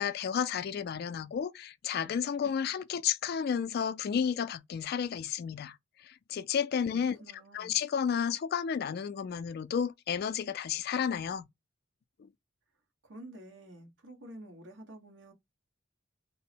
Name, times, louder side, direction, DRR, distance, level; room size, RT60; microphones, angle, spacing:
voice 1, 0.0-5.8 6.0-7.2 7.5-11.5 12.2-12.3, left 7 dB, 50° left, 0.3 m, -32 dB
voice 2, 7.2-7.8 13.0-15.3, right 1 dB, 65° right, 1.2 m, -49 dB
3.6 x 2.0 x 4.3 m
head